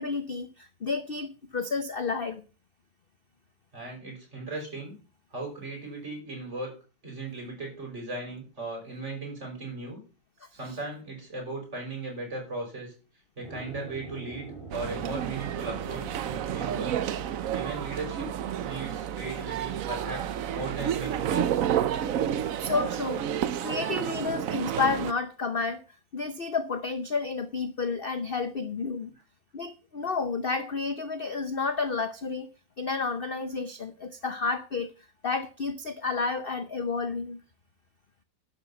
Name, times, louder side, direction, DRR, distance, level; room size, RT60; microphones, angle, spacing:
voice 1, 0.0-2.4 10.6-10.8 22.6-23.2 23.6-25.8 26.1-29.1 29.5-32.5 32.8-34.9 35.2-37.4, left 4 dB, 45° left, 11 dB, 0.7 m, -31 dB
voice 2, 3.7-5.0 5.3-6.7 7.0-10.0 10.5-12.9 13.4-17.0 17.5-18.3 18.6-21.6, right 2 dB, 35° right, 1 dB, 6.0 m, -37 dB
sound 1, 13.4-20.3, right 3 dB, 15° left, 3.6 m, -46 dB
sound 2, 14.7-25.1, right 10 dB, 60° right, 0.9 m, -30 dB
11.5 x 7.0 x 7.1 m, 0.34 s
omnidirectional pair, 2.1 m